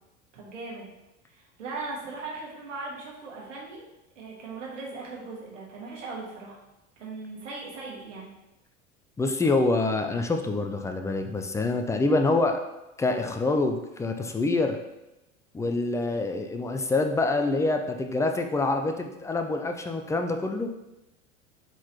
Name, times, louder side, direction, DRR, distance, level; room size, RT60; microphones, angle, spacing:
voice 1, 0.3-0.9 1.3-3.8 4.1-6.6 7.0-8.3, right 3 dB, 80° right, -4 dB, 1.5 m, -39 dB
voice 2, 9.2-12.6 13.0-14.8 15.5-20.7, left 2 dB, 10° left, 5 dB, 0.3 m, -26 dB
4.7 x 3.8 x 2.9 m, 0.95 s
hypercardioid pair, 75°, 37 cm